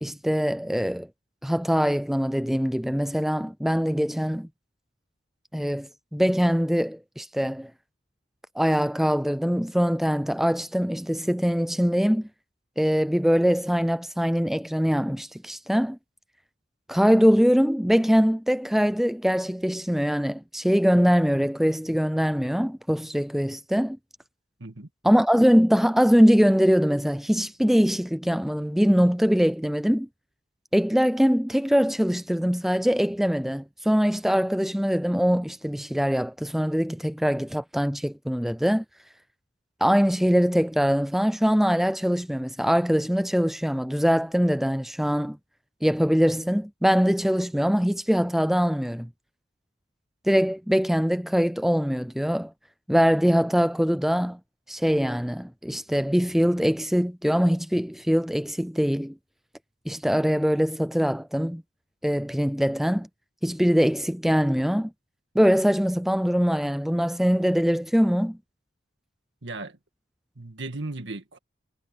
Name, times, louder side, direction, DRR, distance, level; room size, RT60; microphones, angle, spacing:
voice 1, 0.0-1.1 1.4-4.5 5.5-7.7 8.6-12.3 12.8-16.0 16.9-24.0 25.0-30.1 30.7-38.8 39.8-45.4 45.8-49.1 50.3-52.5 52.9-54.4 54.7-59.2 59.9-61.6 62.0-63.1 63.4-64.9 65.3-68.4, equal, ahead, 0.4 m, -22 dB
voice 2, 69.4-69.8 70.4-71.4, right 2 dB, 75° right, 2.0 m, -36 dB
head